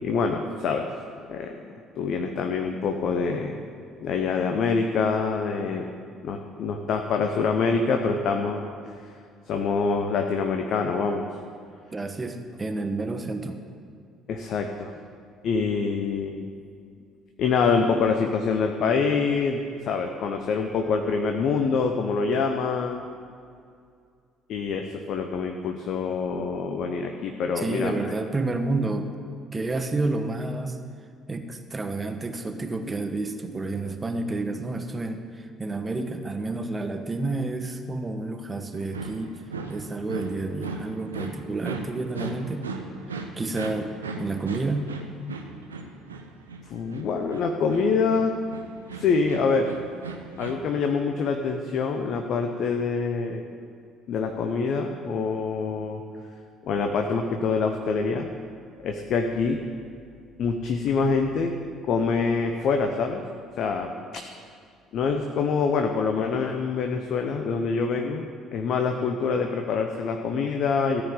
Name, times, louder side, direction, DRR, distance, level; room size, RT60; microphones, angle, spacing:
voice 1, 0.0-0.9 1.3-3.7 4.0-6.0 6.2-8.7 9.5-11.3 14.3-14.9 15.4-16.5 17.4-23.0 24.5-28.1 46.7-48.4 48.9-49.7 50.4-53.4 54.1-56.0 56.6-58.3 58.8-59.6 60.4-61.5 61.9-63.2 63.6-64.2 64.9-71.0, left 5 dB, 55° left, 4 dB, 0.8 m, -25 dB
voice 2, 11.9-13.6 27.6-29.1 29.5-30.8 31.3-39.4 39.7-42.7 43.1-43.9 44.2-44.9, right 2 dB, 25° right, 7 dB, 1.1 m, -30 dB
sound 1, 38.7-50.5, right 3 dB, 85° right, 0.7 m, -37 dB
14.0 x 5.0 x 8.3 m, 2.3 s
figure-of-eight pair, 50°, 0 cm